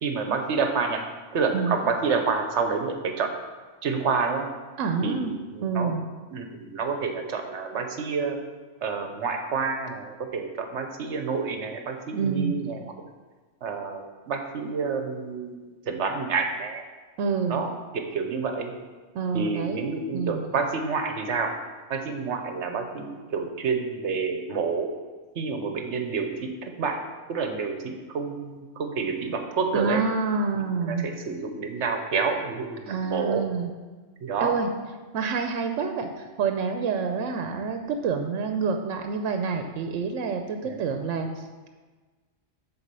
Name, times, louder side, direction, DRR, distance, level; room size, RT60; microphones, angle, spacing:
voice 1, 0.0-1.0 1.3-3.3 3.8-4.5 5.0-5.9 6.3-8.4 8.8-12.9 13.6-16.8 17.5-17.8 18.1-18.7 19.3-21.5 21.9-24.9 25.3-27.0 27.3-30.1 30.9-33.5 34.2-34.6 40.6-40.8, right 5 dB, 70° right, 5 dB, 1.1 m, -28 dB
voice 2, 4.8-5.3 5.6-6.0 12.1-12.6 17.2-17.6 19.1-19.9 20.1-20.5 29.7-31.1 32.9-33.7 34.4-34.7 35.1-41.7, right 5 dB, 90° right, 5 dB, 1.0 m, -27 dB
7.1 x 4.3 x 6.7 m, 1.3 s
omnidirectional pair, 1.3 m